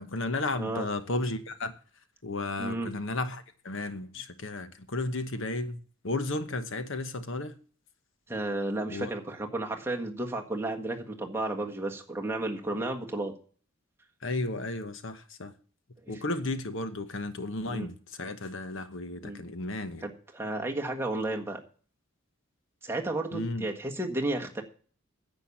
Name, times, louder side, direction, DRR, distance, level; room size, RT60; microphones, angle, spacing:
voice 1, 0.0-1.7 2.2-5.8 6.0-7.6 8.9-9.1 14.2-15.5 16.1-20.0 23.3-23.7, left 2 dB, 60° left, 1.1 m, -33 dB
voice 2, 2.6-2.9 8.3-13.3 16.0-16.1 17.7-17.9 19.2-19.4 20.0-21.6 22.8-24.6, right 2 dB, 10° right, 1.5 m, -32 dB
10.5 x 8.4 x 7.2 m
head